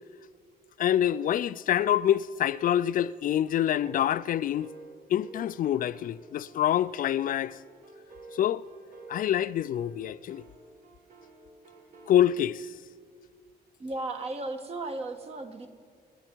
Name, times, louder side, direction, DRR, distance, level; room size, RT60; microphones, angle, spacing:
voice 1, 0.8-4.7 5.1-7.6 8.3-8.6 9.1-10.4 12.1-12.7, left 11 dB, 60° left, 0.4 m, -26 dB
sound 1, 3.5-12.2, right 3 dB, 60° right, 2.6 m, -51 dB
voice 2, 13.8-15.7, right 2 dB, 40° right, 1.4 m, -35 dB
26.5 x 11.0 x 4.5 m
cardioid pair, 145°, 16 cm